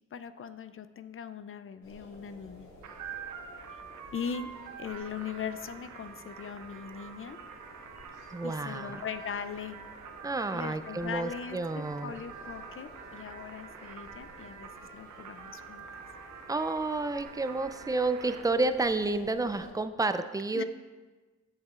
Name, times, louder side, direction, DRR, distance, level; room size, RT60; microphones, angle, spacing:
voice 1, 0.1-2.7 3.1-3.2 4.1-4.5 4.8-7.4 8.4-9.8 10.5-16.0 20.5-20.6, left 7 dB, 45° left, 12 dB, 0.4 m, -40 dB
sound 1, 1.8-19.7, left 1 dB, 85° left, 2.0 m, -53 dB
sound 2, 2.8-18.4, right 6 dB, 90° right, 0.6 m, -46 dB
voice 2, 8.3-9.1 10.2-12.2 16.5-20.6, right 3 dB, 10° right, 10 dB, 0.4 m, -30 dB
8.0 x 7.7 x 2.4 m, 1.3 s
cardioid pair, 55°, 29 cm